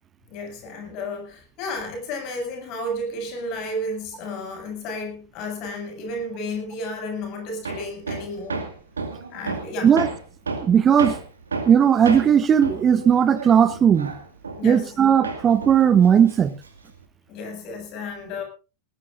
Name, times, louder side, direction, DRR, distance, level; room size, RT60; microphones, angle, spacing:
voice 1, 0.3-8.6 9.3-9.9 14.6-15.0 17.3-18.4, left 1 dB, 45° left, 4 dB, 7.4 m, -32 dB
Hammer, 7.6-15.0 15.2-17.0, right 4 dB, 80° right, 2.3 m, -32 dB
voice 2, 10.6-11.1 11.7-14.1 14.6-16.5, right 8 dB, 25° right, 14 dB, 1.1 m, -17 dB
19.5 x 19.0 x 2.6 m, 0.32 s
figure-of-eight pair, 85°, 0 cm